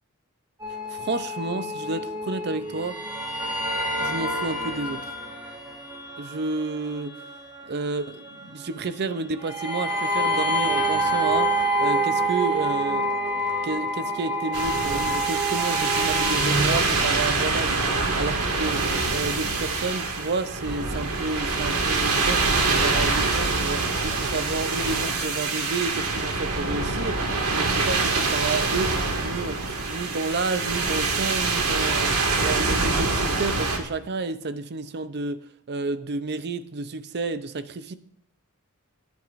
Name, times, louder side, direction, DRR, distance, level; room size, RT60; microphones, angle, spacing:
sound 1, 0.6-16.7, right 1 dB, 20° right, 2.9 m, -27 dB
voice 1, 0.9-3.0 4.0-5.0 6.2-7.1 7.7-13.1 13.6-17.8 18.2-27.2 27.5-28.9 29.2-32.1 32.4-35.4 35.7-37.9, right 3 dB, 50° right, 12 dB, 0.6 m, -30 dB
sound 2, 14.5-33.8, right 3 dB, 75° right, 2.0 m, -25 dB
19.0 x 9.4 x 2.5 m, 0.70 s
head